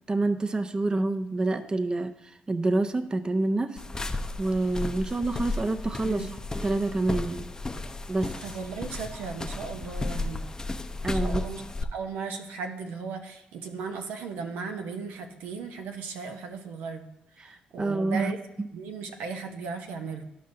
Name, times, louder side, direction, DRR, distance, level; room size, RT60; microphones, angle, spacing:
voice 1, 0.1-2.1 2.5-3.8 4.4-6.3 6.6-7.5 8.1-8.3 11.0-11.4 17.4-18.3 18.6-18.7, right 2 dB, 25° right, 10 dB, 0.5 m, -27 dB
sound 1, 3.8-11.8, left 2 dB, 20° left, 0.6 m, -34 dB
voice 2, 8.4-10.5 11.1-11.6 11.9-17.1 17.4-18.4 18.7-20.2, right 5 dB, 80° right, 5 dB, 0.8 m, -36 dB
12.5 x 5.3 x 2.7 m, 0.86 s
supercardioid pair, 65°, 3 cm